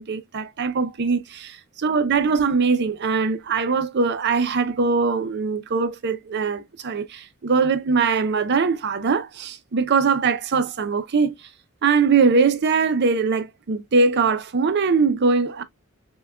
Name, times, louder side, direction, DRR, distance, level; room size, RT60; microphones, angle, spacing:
voice 1, 0.0-11.3 11.8-15.6, right 4 dB, 50° right, 0.5 m, -21 dB
5.7 x 2.2 x 2.2 m
head